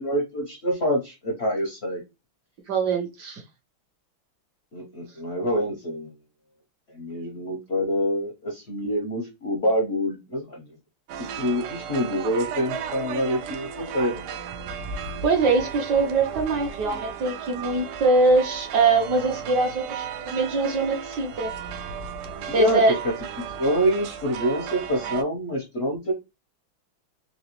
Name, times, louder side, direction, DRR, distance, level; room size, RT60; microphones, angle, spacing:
voice 1, 0.0-2.0 4.7-6.1 6.9-10.7 11.4-14.2 22.5-26.1, equal, 70° left, 1 dB, 0.6 m, -26 dB
voice 2, 2.7-3.4 15.2-21.5 22.5-22.9, right 3 dB, 65° right, 2 dB, 1.1 m, -22 dB
sound 1, 11.1-25.2, right 7 dB, 85° right, 1.5 m, -35 dB
3.9 x 2.8 x 3.0 m, 0.24 s
omnidirectional pair, 2.4 m